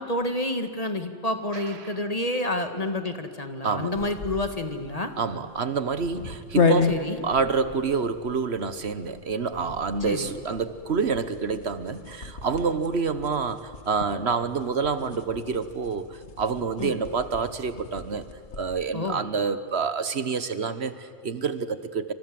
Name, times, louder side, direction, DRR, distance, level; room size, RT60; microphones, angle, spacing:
voice 1, 0.0-5.1 6.9-7.2 10.0-10.3 16.8-17.0 18.9-19.2, left 1 dB, 35° left, 7 dB, 2.0 m, -29 dB
voice 2, 3.6-4.0 5.2-16.1 16.4-18.3 18.6-22.1, right 5 dB, 65° right, 12 dB, 1.4 m, -27 dB
sound 1, 3.9-18.9, left 4 dB, 75° left, 2.0 m, -33 dB
29.0 x 26.0 x 7.7 m, 2.3 s
omnidirectional pair, 1.2 m